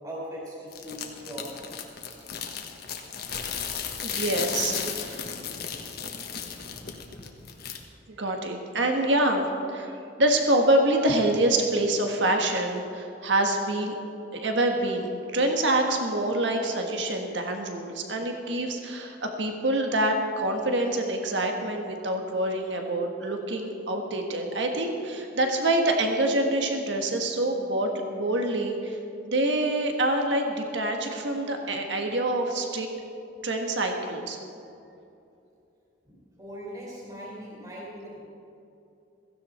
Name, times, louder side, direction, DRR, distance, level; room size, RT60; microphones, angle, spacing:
voice 1, 0.0-1.6 32.9-33.0 36.0-38.2, equal, 20° right, -5 dB, 4.4 m, -40 dB
sound 1, 0.7-7.8, left 7 dB, 55° left, 1.4 m, -35 dB
voice 2, 3.7-5.3 8.1-13.9 14.3-29.0 29.2-32.9 33.4-34.4, right 1 dB, 70° right, 3 dB, 1.6 m, -26 dB
16.0 x 15.5 x 4.4 m, 2.7 s
head